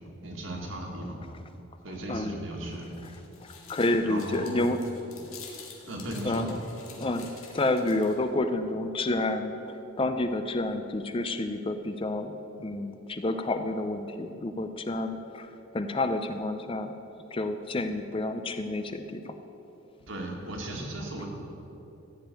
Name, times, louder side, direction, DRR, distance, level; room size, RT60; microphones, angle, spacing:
voice 1, 0.2-1.2 1.8-2.8 4.0-4.6 5.9-6.5 20.1-21.3, right 1 dB, 65° right, 0 dB, 2.1 m, -36 dB
voice 2, 2.1-2.4 3.0-3.1 3.7-4.8 6.2-6.6 7.0-9.5 10.0-12.3 12.6-15.5 15.7-16.9 17.3-19.3, left 2 dB, 25° left, 8 dB, 0.5 m, -29 dB
sound 1, 2.6-8.3, left 6 dB, 85° left, 2.1 m, -49 dB
14.5 x 5.3 x 9.0 m, 3.0 s
head